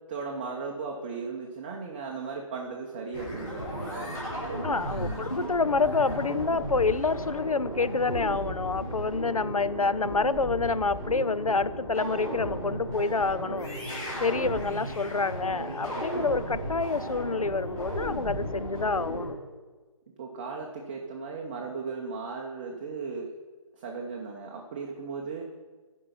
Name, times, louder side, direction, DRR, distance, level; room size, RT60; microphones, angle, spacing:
voice 1, 0.1-4.1 4.9-5.3 20.2-23.3 23.8-25.4, right 4 dB, 20° right, 0 dB, 0.6 m, -36 dB
sound 1, 3.1-19.3, equal, 20° left, 3.6 m, -35 dB
voice 2, 4.6-13.7 14.2-19.3, left 4 dB, 90° left, 16 dB, 0.4 m, -28 dB
11.0 x 5.4 x 5.8 m, 1.4 s
figure-of-eight pair, 145°, 18 cm